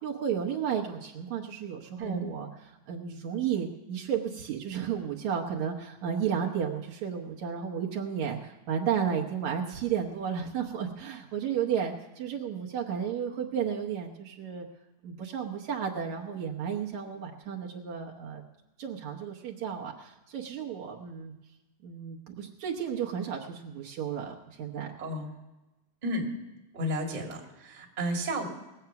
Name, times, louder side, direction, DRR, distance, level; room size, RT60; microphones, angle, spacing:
voice 1, 0.0-14.7 15.0-18.4 18.8-21.3 21.8-24.9, right 8 dB, 65° right, 0 dB, 2.2 m, -33 dB
voice 2, 25.0-25.3 26.0-26.3 26.7-28.4, equal, 20° right, 0 dB, 1.4 m, -32 dB
20.0 x 8.1 x 5.8 m, 1.0 s
omnidirectional pair, 3.8 m